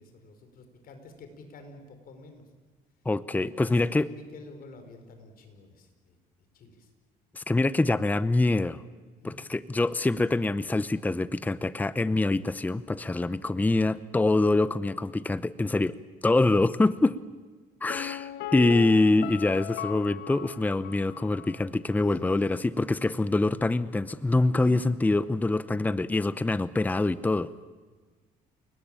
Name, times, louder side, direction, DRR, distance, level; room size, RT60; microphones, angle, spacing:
voice 1, 0.0-2.4 3.3-6.2 6.5-6.9 9.2-9.4 12.1-12.5 22.0-22.6 23.0-23.2 24.6-24.8, left 3 dB, 60° left, 7 dB, 5.0 m, -48 dB
voice 2, 3.1-4.1 7.3-8.8 9.2-16.0 16.2-17.2 17.8-27.5, left 2 dB, 10° left, 16 dB, 0.7 m, -25 dB
Piano, 17.9-21.7 21.9-22.0, left 9 dB, 90° left, 1.3 m, -38 dB
29.5 x 19.0 x 8.9 m, 1.4 s
cardioid pair, 110°, 17 cm